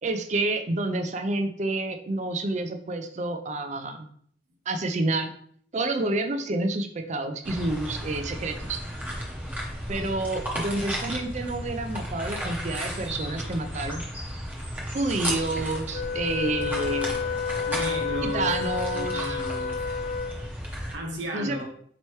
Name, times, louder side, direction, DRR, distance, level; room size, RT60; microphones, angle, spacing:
voice 1, 0.0-4.1 4.7-5.3 5.7-8.8 9.9-14.0 14.9-17.1 18.2-19.4 21.3-21.7, right 2 dB, 40° right, 7 dB, 0.4 m, -29 dB
sound 1, 7.4-20.9, equal, 10° right, 0.7 m, -34 dB
Wind instrument woodwind instrument, 15.9-20.6, left 6 dB, 45° left, 0.4 m, -30 dB
voice 2, 17.7-18.5 18.9-19.9 20.9-21.7, right 1 dB, 80° right, 0 dB, 1.0 m, -34 dB
4.3 x 3.0 x 3.1 m, 0.62 s
head